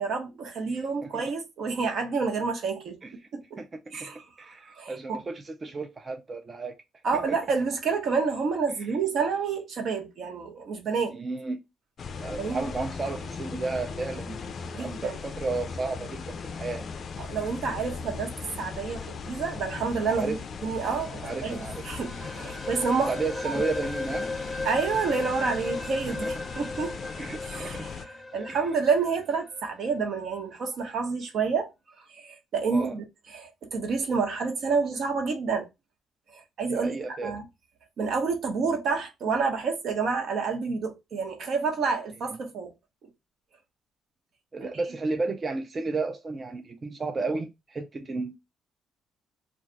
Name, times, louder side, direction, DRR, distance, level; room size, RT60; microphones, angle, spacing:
voice 1, 0.0-3.0 3.3-3.6 3.9-4.5 4.8-5.2 7.0-11.1 12.3-12.7 14.7-15.2 17.2-20.4 20.6-23.1 23.4-23.6 24.6-27.0 27.5-27.9 28.3-31.7 32.1-33.0 33.3-35.7 36.3-37.4 38.0-42.7 44.6-44.7, right 5 dB, 65° right, 1.0 m, -29 dB
voice 2, 0.7-1.2 3.0-3.1 3.6-4.1 4.4-6.8 7.1-7.4 8.9-9.0 11.1-11.6 12.2-16.9 20.1-20.4 21.2-21.8 23.1-24.3 26.1-26.3 27.2-27.9 28.5-28.6 32.7-33.0 36.7-37.3 44.5-48.4, right 3 dB, 35° right, 0.5 m, -33 dB
sound 1, 12.0-28.0, left 5 dB, 50° left, 0.4 m, -38 dB
sound 2, 20.9-29.7, left 2 dB, 10° left, 1.0 m, -37 dB
2.4 x 2.3 x 3.8 m
cardioid pair, 90°, 0 cm